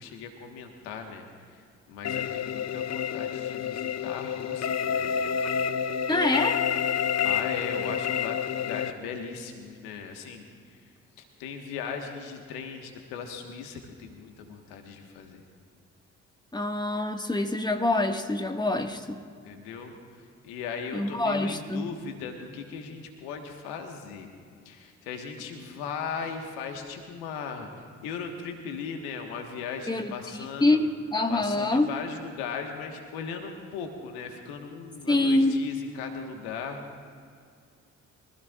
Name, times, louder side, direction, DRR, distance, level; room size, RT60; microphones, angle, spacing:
voice 1, 0.0-5.4 7.2-10.8 11.2-15.4 19.4-24.3 24.6-27.7 28.0-30.9 31.3-36.8, left 5 dB, 80° left, 4 dB, 1.5 m, -38 dB
sound 1, 2.0-8.9, left 8 dB, 45° left, 0.7 m, -29 dB
voice 2, 6.1-6.6 16.5-19.2 20.9-21.9 29.9-31.9 35.1-35.6, left 2 dB, 10° left, 4 dB, 1.7 m, -25 dB
24.0 x 15.5 x 2.4 m, 2.2 s
hypercardioid pair, 40°, 38 cm